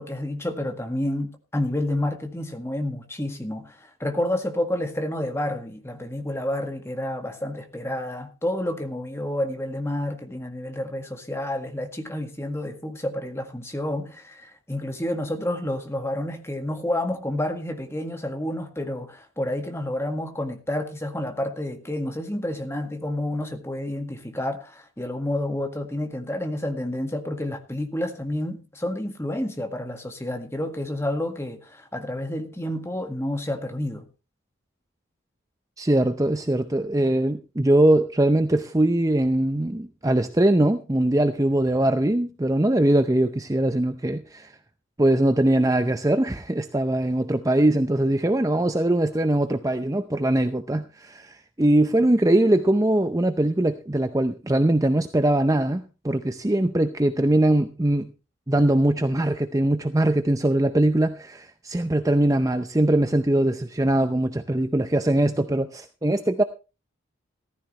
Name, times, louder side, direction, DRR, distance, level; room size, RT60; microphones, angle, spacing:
voice 1, 0.0-34.1, left 1 dB, 15° left, 1.8 m, -29 dB
voice 2, 35.8-44.5 45.0-58.1 58.5-66.4, right 1 dB, 15° right, 0.6 m, -21 dB
15.0 x 14.0 x 3.2 m
head